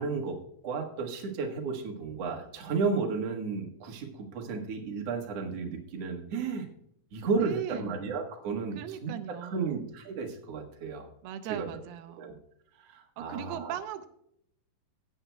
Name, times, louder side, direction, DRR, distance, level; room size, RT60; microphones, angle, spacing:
voice 1, 0.0-6.7 7.1-11.1 11.5-11.7 12.2-12.3 12.8-13.8, right 4 dB, 55° right, 2 dB, 2.1 m, -33 dB
voice 2, 7.4-8.0 8.8-9.8 11.2-12.3 13.2-14.1, right 10 dB, 85° right, 10 dB, 2.7 m, -38 dB
16.5 x 9.1 x 2.3 m, 0.72 s
omnidirectional pair, 4.4 m